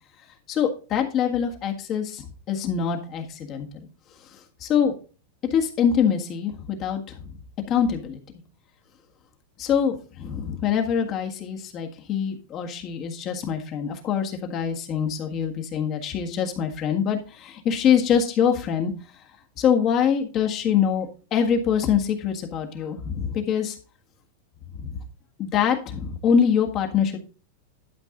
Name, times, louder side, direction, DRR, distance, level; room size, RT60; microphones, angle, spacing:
voice 1, 0.5-3.9 4.6-4.9 5.4-7.3 7.7-8.2 9.6-18.9 19.6-23.8 24.7-25.0 25.4-27.2, left 7 dB, 30° left, 3 dB, 1.6 m, -24 dB
11.5 x 5.2 x 3.8 m, 0.36 s
supercardioid pair, 155°, 0 cm